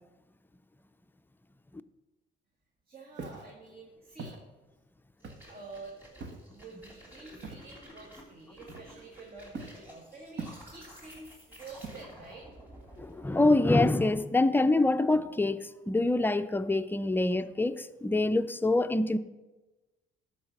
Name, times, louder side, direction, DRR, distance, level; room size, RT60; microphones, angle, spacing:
voice 1, 2.9-4.4 5.5-6.0 6.5-12.5 17.2-17.3, right 3 dB, 45° right, 1.8 m, -48 dB
Walk footsteps, 3.1-3.5 4.2-4.4 5.2-5.6 6.2-6.5 7.4-7.7 8.7-9.1 9.5-9.8 10.4-10.9 11.8-12.3, right 4 dB, 65° right, 1.2 m, -42 dB
sound 1, 5.2-14.2, equal, 10° right, 3.0 m, -52 dB
voice 2, 13.0-19.2, left 2 dB, 10° left, 0.4 m, -25 dB
12.5 x 4.8 x 5.8 m
cardioid pair, 90°, 20 cm